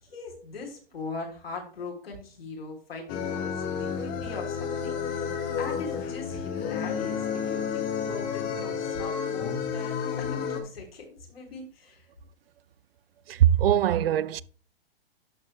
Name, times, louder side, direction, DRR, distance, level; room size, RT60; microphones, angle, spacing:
voice 1, 0.0-5.2 5.6-12.1, left 3 dB, 80° left, 3.3 m, -41 dB
sound 1, 3.1-10.6, left 7 dB, 30° left, 1.3 m, -31 dB
voice 2, 13.3-14.4, right 11 dB, 75° right, 0.5 m, -21 dB
11.5 x 4.4 x 3.3 m
hypercardioid pair, 140°, 29 cm